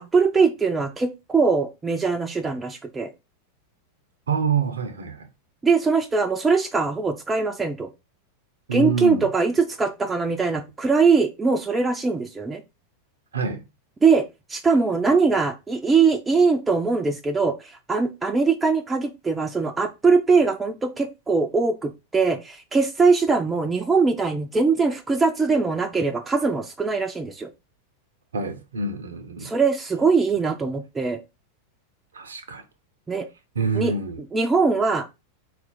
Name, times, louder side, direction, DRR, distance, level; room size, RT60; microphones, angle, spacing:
voice 1, 0.0-3.1 5.6-7.9 8.7-12.6 14.0-14.2 14.5-17.6 17.9-27.5 29.4-31.2 33.1-33.3 33.8-33.9 34.3-35.1, right 4 dB, 15° right, 0.4 m, -21 dB
voice 2, 4.3-5.3 8.7-9.3 13.3-13.6 28.3-29.5 32.1-32.6 33.6-34.2, right 5 dB, 70° right, 0.6 m, -26 dB
4.1 x 2.4 x 4.0 m
figure-of-eight pair, 90°, 0 cm